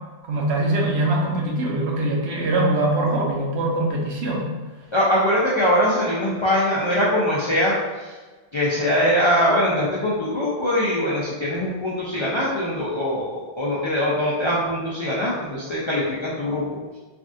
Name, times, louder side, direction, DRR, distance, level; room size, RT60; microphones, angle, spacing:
voice 1, 0.2-4.5, right 1 dB, 85° right, -2 dB, 0.9 m, -22 dB
voice 2, 4.9-8.1 8.5-16.8, equal, 50° left, -7 dB, 0.3 m, -22 dB
3.4 x 2.2 x 2.5 m, 1.3 s
omnidirectional pair, 1.0 m